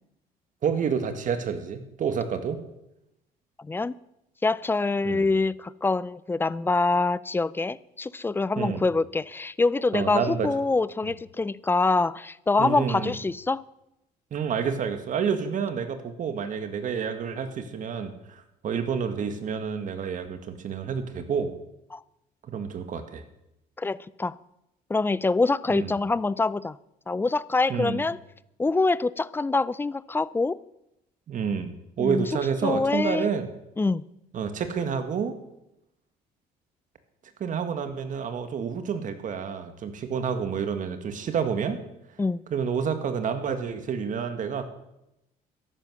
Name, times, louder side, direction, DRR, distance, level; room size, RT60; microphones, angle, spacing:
voice 1, 0.6-2.6 5.0-5.2 8.6-8.9 9.9-10.5 11.0-11.1 12.6-13.1 14.3-21.5 22.5-23.2 25.7-25.9 27.7-28.0 31.3-33.5 34.3-35.4 37.4-41.8 42.5-44.7, right 6 dB, 50° right, 1.9 m, -29 dB
voice 2, 3.6-3.9 4.4-13.6 21.9-22.0 23.8-24.3 24.9-26.8 27.1-28.2 28.6-30.6 32.0-32.3 32.6-33.3 33.8-34.0 42.2-42.4, left 3 dB, 15° left, 0.4 m, -25 dB
14.0 x 11.0 x 6.4 m
cardioid pair, 110°, 17 cm